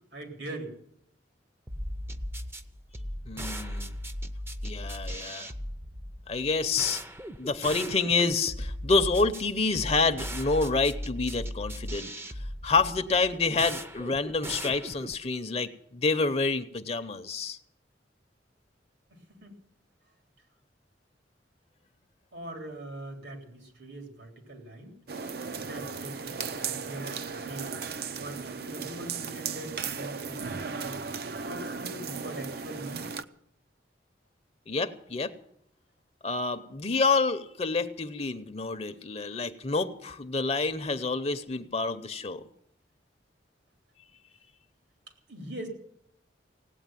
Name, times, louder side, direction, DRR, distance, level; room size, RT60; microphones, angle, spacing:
voice 1, 0.1-0.7 19.1-19.5 22.3-25.0 25.5-27.8 28.1-31.0 31.4-33.1 45.3-45.7, right 1 dB, 85° right, 2 dB, 3.7 m, -42 dB
sound 1, 1.7-15.3, equal, 15° right, 0.6 m, -38 dB
voice 2, 3.3-3.9 4.6-5.5 6.3-7.0 7.4-12.1 12.6-17.6 34.7-35.3 36.2-42.5, left 4 dB, 35° left, 9 dB, 0.7 m, -28 dB
sound 2, 25.1-33.2, right 5 dB, 55° right, 0.6 m, -36 dB
17.5 x 8.9 x 9.0 m, 0.70 s
head